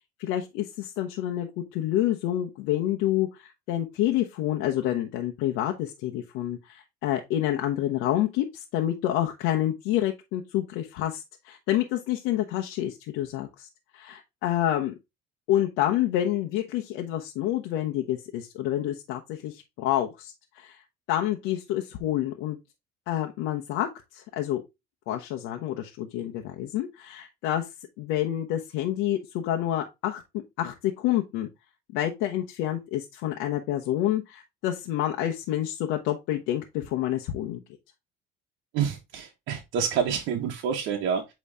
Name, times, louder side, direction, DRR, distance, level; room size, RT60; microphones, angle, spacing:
voice 1, 0.2-13.7 13.9-14.9 15.5-22.6 23.1-24.6 25.1-27.7 28.0-30.2 30.6-31.5 31.9-37.6, left 12 dB, 75° left, 0.9 m, -28 dB
voice 2, 38.7-41.3, right 7 dB, 65° right, 1.1 m, -28 dB
8.5 x 3.2 x 3.5 m
supercardioid pair, 90°, 21 cm